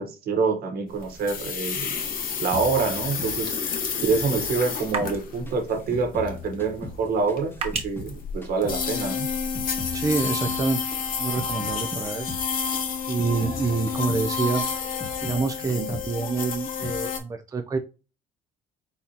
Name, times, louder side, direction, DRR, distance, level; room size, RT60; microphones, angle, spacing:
voice 1, 0.0-1.9 2.4-3.6 4.0-9.3 15.6-15.9, right 4 dB, 65° right, 1.3 m, -26 dB
sound 1, 0.9-17.2, left 6 dB, 55° left, 1.1 m, -30 dB
sound 2, 2.5-5.2 5.5-8.2 8.4-11.8 12.0-12.5 12.7-15.4 15.7-16.1 16.4-17.0, left 2 dB, 15° left, 0.9 m, -40 dB
sound 3, 2.6-9.3, right 5 dB, 35° right, 1.2 m, -40 dB
voice 2, 9.9-10.8 11.2-12.3 13.1-14.7 15.2-17.8, right 4 dB, 20° right, 0.5 m, -27 dB
4.1 x 3.9 x 2.9 m
cardioid pair, 110°, 17 cm